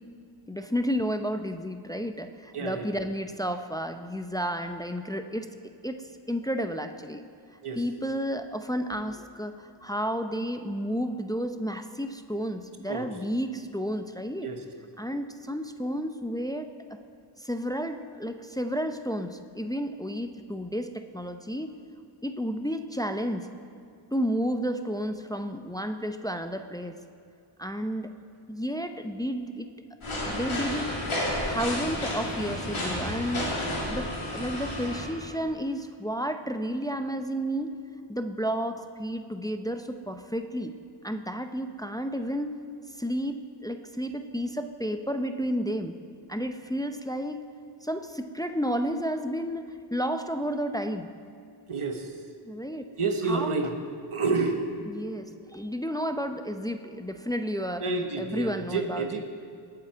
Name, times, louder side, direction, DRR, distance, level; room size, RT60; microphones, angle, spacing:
voice 1, 0.5-5.5 5.8-7.2 7.7-14.5 15.0-17.0 17.4-21.7 22.2-23.5 24.1-26.9 27.6-28.1 28.5-29.7 30.2-30.9 31.5-33.5 33.9-37.7 38.1-40.7 41.0-42.5 42.9-45.9 46.3-47.4 47.8-51.1 52.4-52.9 53.2-53.6 54.9-57.9 58.2-59.2, equal, 10° left, 7 dB, 0.5 m, -31 dB
voice 2, 2.5-2.9 7.6-7.8 12.9-13.1 14.4-14.6 51.7-52.1 53.0-53.7 54.1-54.6 57.8-59.2, right 4 dB, 90° right, 4 dB, 1.2 m, -29 dB
sound 1, 30.0-35.1, left 1 dB, 80° left, 2.6 m, -31 dB
19.0 x 7.6 x 4.6 m, 2.3 s
wide cardioid pair, 55°, 49 cm